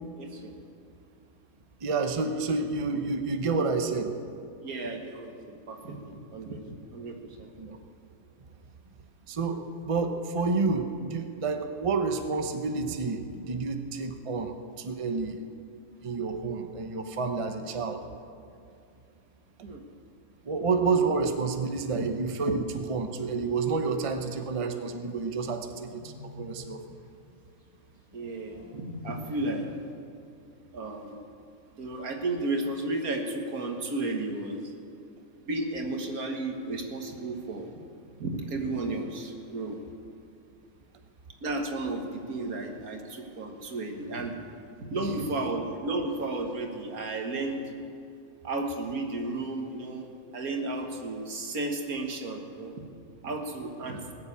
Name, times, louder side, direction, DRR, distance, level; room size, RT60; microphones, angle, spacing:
voice 1, 0.2-0.5 4.6-7.5 19.6-19.8 21.9-22.1 28.1-29.7 30.7-31.2 31.8-34.7 35.4-37.7 38.2-39.8 41.4-44.3 44.8-47.7 48.4-52.7 53.2-54.1, right 2 dB, 80° right, 3 dB, 1.9 m, -33 dB
voice 2, 1.8-4.1 7.6-7.8 9.3-15.4 16.0-18.0 20.5-26.8, right 4 dB, 30° right, 6 dB, 0.7 m, -29 dB
sound 1, 23.2-24.1 25.4-26.7 28.1-29.7, equal, 60° left, 3.8 m, -46 dB
20.0 x 7.2 x 8.5 m, 2.5 s
omnidirectional pair, 1.5 m